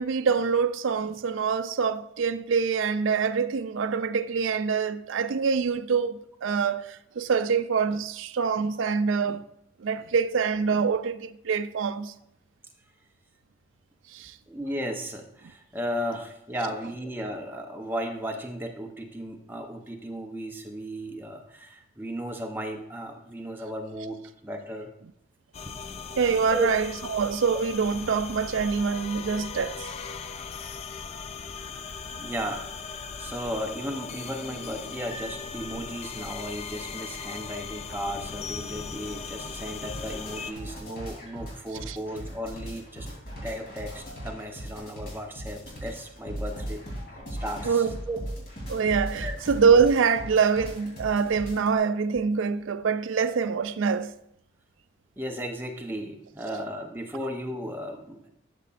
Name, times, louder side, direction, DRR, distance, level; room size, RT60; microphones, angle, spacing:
voice 1, 0.0-9.4 9.8-12.1 14.1-14.3 26.2-29.8 41.9-42.0 47.6-47.9 48.7-54.1, right 5 dB, 70° right, 0.4 m, -25 dB
voice 2, 14.5-24.9 25.6-25.7 26.5-26.7 32.2-32.7 32.9-43.1 43.4-46.9 47.3-48.2 49.2-49.4 55.2-58.3, equal, 10° right, 0.7 m, -35 dB
sound 1, 25.5-40.5, left 5 dB, 30° left, 0.3 m, -38 dB
sound 2, 39.5-51.8, equal, 50° left, 3.3 m, -38 dB
12.0 x 6.6 x 2.5 m
head